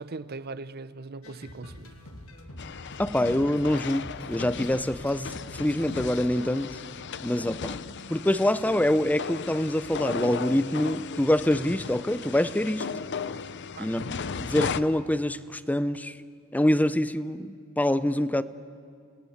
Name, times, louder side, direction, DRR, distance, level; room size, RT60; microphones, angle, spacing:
voice 1, 0.0-1.9 13.7-13.9, right 3 dB, 50° right, 0.7 m, -39 dB
sound 1, 1.2-6.3, left 1 dB, 85° left, 2.4 m, -45 dB
sound 2, 2.6-14.8, left 5 dB, 55° left, 0.7 m, -36 dB
voice 2, 3.0-6.8 7.2-7.8 8.1-12.9 13.8-14.1 14.4-16.2 16.5-18.4, left 1 dB, 10° left, 0.6 m, -25 dB
28.0 x 19.5 x 7.3 m
head